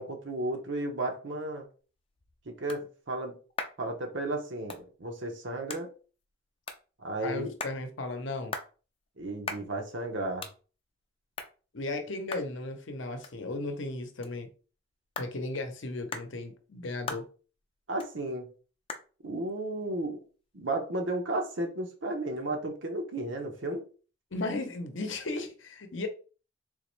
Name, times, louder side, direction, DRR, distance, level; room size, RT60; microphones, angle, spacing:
voice 1, 0.0-1.7 2.5-3.4 3.8-5.9 7.0-7.5 9.2-10.5 17.9-18.5 19.2-20.2 20.5-23.8, right 1 dB, 70° right, 0.9 m, -33 dB
sound 1, 1.8-21.1, left 4 dB, 30° left, 0.5 m, -45 dB
voice 2, 7.2-8.5 11.7-14.5 15.2-17.3 24.3-26.1, left 2 dB, 70° left, 0.7 m, -35 dB
3.7 x 3.0 x 3.1 m
head